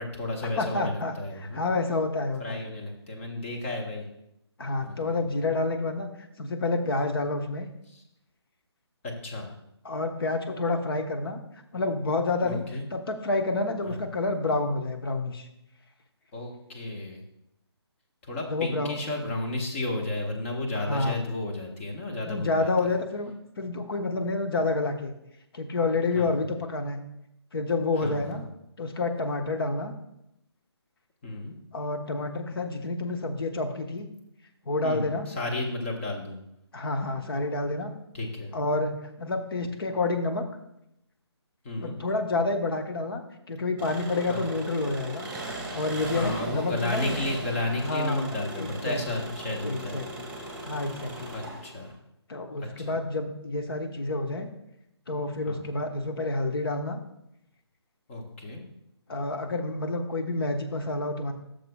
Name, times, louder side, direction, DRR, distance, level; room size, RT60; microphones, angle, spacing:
voice 1, 0.0-1.6 2.4-4.1 4.8-5.2 7.9-8.0 9.0-9.5 12.4-12.8 13.9-14.0 16.3-17.2 18.2-22.7 26.1-26.3 28.0-28.4 31.2-31.6 34.8-36.4 38.1-38.5 41.6-42.0 44.3-44.4 46.1-50.0 51.3-51.9 52.6-52.9 55.5-55.6 58.1-58.6, left 2 dB, 30° left, 1 dB, 1.2 m, -33 dB
voice 2, 0.6-2.6 4.6-6.1 6.4-7.7 9.8-11.4 11.7-12.6 12.9-15.5 18.5-19.0 20.8-21.2 22.2-25.1 25.5-27.0 27.5-28.4 28.8-29.9 31.7-34.1 34.7-35.3 36.7-37.9 38.5-40.4 41.8-43.2 43.5-45.3 45.7-47.2 47.8-49.2 49.6-50.0 50.6-51.3 52.3-54.5 55.1-57.0 59.1-61.3, left 2 dB, 55° left, 5 dB, 1.0 m, -29 dB
Engine, 43.8-51.9, right 1 dB, 10° right, 1.7 m, -38 dB
12.0 x 6.7 x 2.3 m, 0.81 s
figure-of-eight pair, 155°, 14 cm